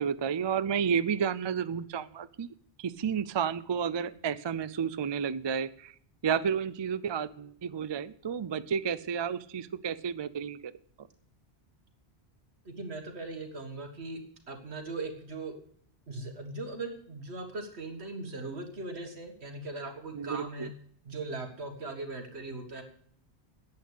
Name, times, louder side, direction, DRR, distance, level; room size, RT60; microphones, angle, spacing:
voice 1, 0.0-5.9 6.2-10.7 11.0-11.1 20.1-20.7, right 7 dB, 50° right, 15 dB, 0.3 m, -31 dB
voice 2, 12.7-14.2 14.5-15.5 16.1-20.7 21.0-22.8, right 2 dB, 75° right, 5 dB, 2.0 m, -39 dB
10.5 x 8.5 x 8.2 m, 0.62 s
omnidirectional pair, 1.1 m